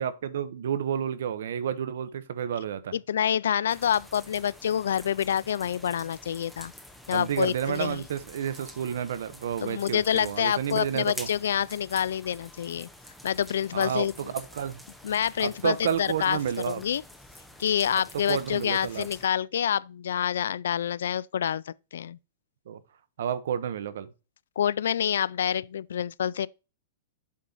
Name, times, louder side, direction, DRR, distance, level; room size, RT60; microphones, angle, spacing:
voice 1, 0.0-3.0 7.1-11.3 13.7-14.8 15.4-16.8 18.1-19.1 22.7-22.8 23.2-24.1, right 8 dB, 70° right, 0.9 m, -30 dB
voice 2, 2.9-6.7 7.1-8.0 9.6-12.9 13.2-14.1 15.0-16.4 16.7-17.0 17.6-22.2 24.6-26.5, left 9 dB, 85° left, 0.3 m, -27 dB
sound 1, 3.7-19.3, left 1 dB, ahead, 0.6 m, -48 dB
7.5 x 4.3 x 3.9 m
supercardioid pair, 165°, 0 cm